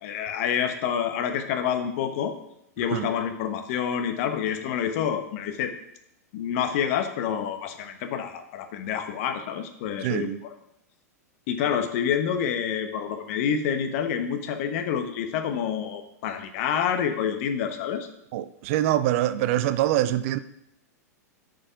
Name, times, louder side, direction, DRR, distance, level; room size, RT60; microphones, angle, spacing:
voice 1, 0.0-2.3 2.8-5.7 6.3-10.5 11.5-18.1, left 8 dB, 55° left, 1.1 m, -28 dB
voice 2, 10.0-10.4 18.3-20.4, right 13 dB, 50° right, 0.5 m, -24 dB
9.7 x 5.1 x 4.6 m
hypercardioid pair, 105°, 9 cm